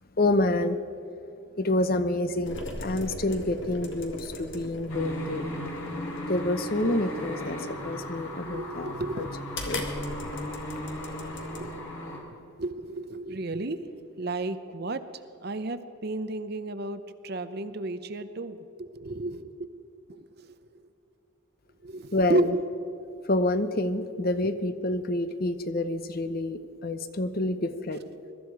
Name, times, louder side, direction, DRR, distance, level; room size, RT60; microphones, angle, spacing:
voice 1, 0.2-0.8 1.6-5.5 6.3-7.6 7.8-9.3 9.7-9.8 22.1-22.5 23.3-28.0, left 2 dB, 45° left, 10 dB, 0.8 m, -28 dB
sound 1, 2.5-11.8, left 1 dB, 60° left, 1.9 m, -40 dB
sound 2, 4.9-12.2, equal, 85° left, 3.4 m, -36 dB
voice 2, 7.6-9.3 10.2-10.3 11.5-11.9 12.1-15.0 15.4-19.7 20.1-20.5 21.8-22.6, right 2 dB, 50° right, 11 dB, 0.7 m, -33 dB
22.0 x 13.0 x 4.8 m, 2.8 s
head